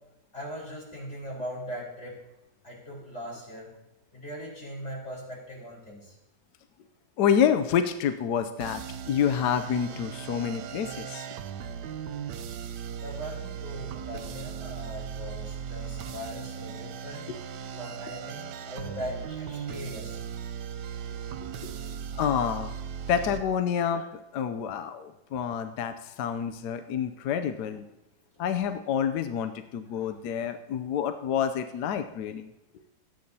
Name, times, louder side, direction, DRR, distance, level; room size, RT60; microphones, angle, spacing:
voice 1, 0.3-2.2 2.6-3.7 4.1-6.1 12.9-17.2 17.8-20.2 29.9-30.1, equal, 40° left, -4 dB, 4.6 m, -40 dB
voice 2, 7.2-11.3 17.3-17.4 21.6-21.7 22.2-22.7 23.1-27.8 28.4-32.5, left 8 dB, 75° left, 8 dB, 1.2 m, -28 dB
sound 1, 8.6-23.4, right 8 dB, 75° right, 1.2 m, -38 dB
20.0 x 9.5 x 2.8 m, 0.92 s
omnidirectional pair, 1.9 m